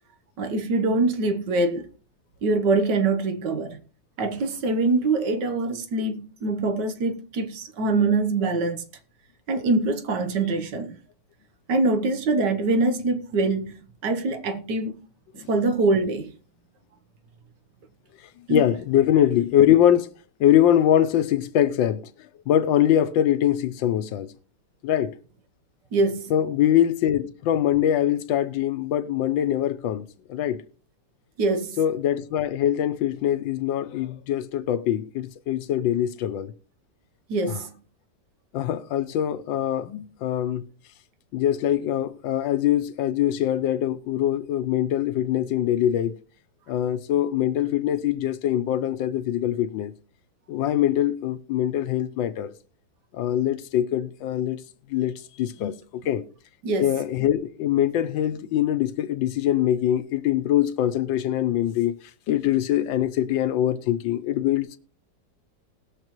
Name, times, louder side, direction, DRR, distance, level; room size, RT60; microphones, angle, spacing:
voice 1, 0.4-1.9 2.4-3.8 4.2-8.8 9.5-11.0 11.7-14.9 15.3-16.3 18.5-18.6 25.9-26.3 31.4-31.8 37.3-37.7 56.6-56.9, right 3 dB, 70° right, 1.6 m, -24 dB
voice 2, 18.5-20.1 20.4-22.0 22.5-24.3 24.8-25.1 26.3-30.6 31.8-36.5 37.5-37.6 38.5-40.7 41.3-46.1 46.7-49.9 50.5-52.5 53.1-54.6 54.9-56.2 56.8-62.0 62.3-64.8, left 11 dB, 90° left, 1.5 m, -23 dB
19.5 x 6.6 x 3.0 m
omnidirectional pair, 2.0 m